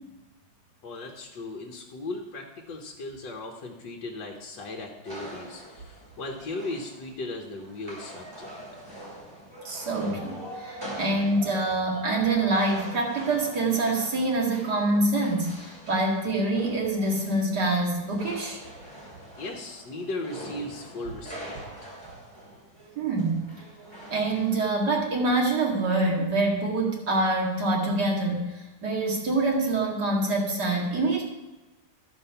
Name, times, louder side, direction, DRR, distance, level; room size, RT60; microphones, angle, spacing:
voice 1, 0.8-8.5 19.4-21.6, left 2 dB, 75° left, 0 dB, 1.7 m, -37 dB
sound 1, 5.0-24.5, right 1 dB, 15° right, 3.2 m, -43 dB
voice 2, 9.6-18.6 23.0-23.4 24.1-31.2, right 2 dB, 60° right, -2 dB, 2.7 m, -25 dB
14.0 x 5.3 x 5.6 m, 1.1 s
omnidirectional pair, 1.9 m